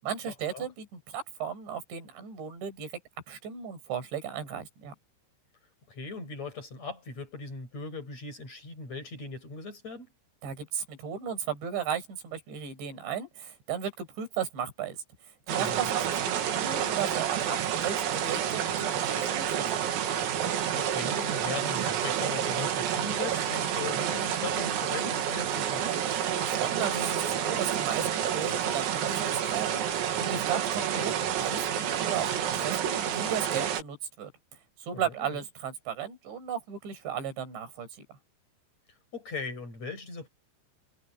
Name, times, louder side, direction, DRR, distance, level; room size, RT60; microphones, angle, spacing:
voice 1, 0.0-2.9 3.3-4.9 10.4-15.0 15.5-17.6 17.8-19.9 26.4-34.3 34.8-37.9, right 8 dB, 60° right, 7.9 m, -35 dB
voice 2, 5.9-10.1 15.6-16.0 20.7-26.1 35.1-35.4 39.1-40.3, left 3 dB, 30° left, 7.7 m, -39 dB
sound 1, 15.5-33.8, right 9 dB, 90° right, 5.4 m, -29 dB
omnidirectional pair, 5.9 m